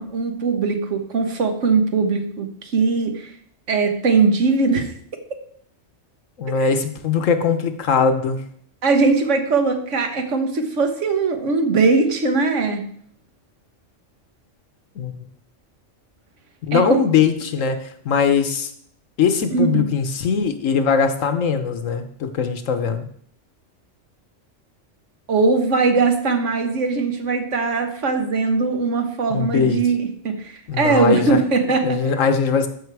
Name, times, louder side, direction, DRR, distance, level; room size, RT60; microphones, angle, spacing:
voice 1, 0.0-3.3 3.7-4.9 6.6-6.7 8.8-12.8 16.7-16.8 19.5-19.9 25.3-32.0, right 4 dB, 70° right, 6 dB, 1.6 m, -20 dB
voice 2, 6.4-8.4 15.0-15.3 16.7-18.7 19.2-23.1 29.3-29.8 30.7-31.4 31.8-32.7, left 6 dB, 90° left, 9 dB, 1.3 m, -20 dB
13.5 x 5.3 x 4.7 m, 0.63 s
omnidirectional pair, 1.3 m